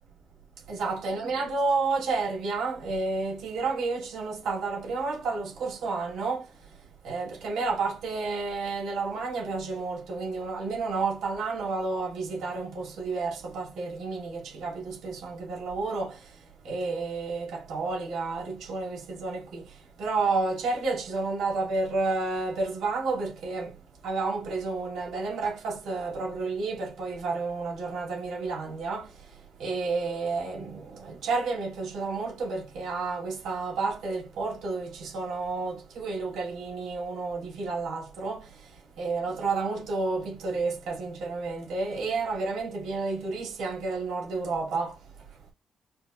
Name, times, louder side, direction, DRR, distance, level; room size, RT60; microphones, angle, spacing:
voice 1, 0.7-45.5, right 3 dB, 75° right, 2.0 m, -31 dB
5.1 x 2.6 x 2.8 m
cardioid pair, 90°, 0 cm